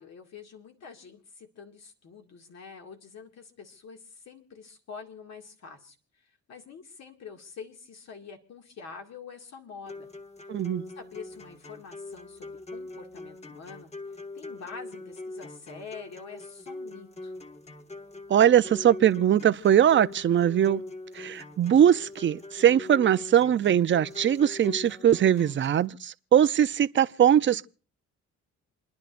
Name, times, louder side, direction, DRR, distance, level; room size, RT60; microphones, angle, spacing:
voice 1, 0.0-6.0 6.5-10.1 11.0-13.9 14.3-17.3, left 5 dB, 60° left, 2.2 m, -46 dB
sound 1, 9.9-25.9, left 2 dB, 20° left, 1.0 m, -43 dB
voice 2, 10.5-10.8 18.3-20.8 21.1-27.7, right 10 dB, 40° right, 0.5 m, -21 dB
28.5 x 10.5 x 2.5 m
cardioid pair, 90°, 30 cm